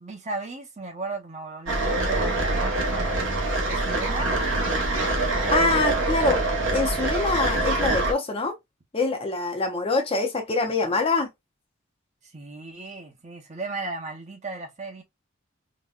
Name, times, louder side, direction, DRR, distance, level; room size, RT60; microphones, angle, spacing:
voice 1, 0.0-4.3 5.4-6.1 12.2-15.0, right 3 dB, 35° right, 0.8 m, -36 dB
sound 1, 1.7-8.1, right 2 dB, 65° right, 1.1 m, -24 dB
voice 2, 5.5-6.4 6.7-8.6 8.9-11.3, left 3 dB, 25° left, 0.6 m, -24 dB
4.0 x 2.2 x 2.3 m
head